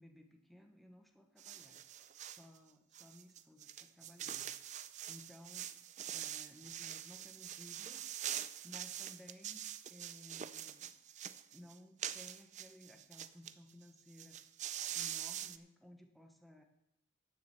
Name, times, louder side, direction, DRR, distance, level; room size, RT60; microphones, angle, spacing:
voice 1, 0.0-1.8 2.2-5.7 6.1-8.1 8.6-9.6 9.9-10.9 11.5-14.4 14.9-16.6, left 1 dB, ahead, 4 dB, 1.1 m, -58 dB
sound 1, 1.4-2.5 2.9-13.5 13.8-13.9 14.1-15.6, right 10 dB, 35° right, 0.4 m, -44 dB
12.0 x 6.7 x 6.9 m, 0.83 s
head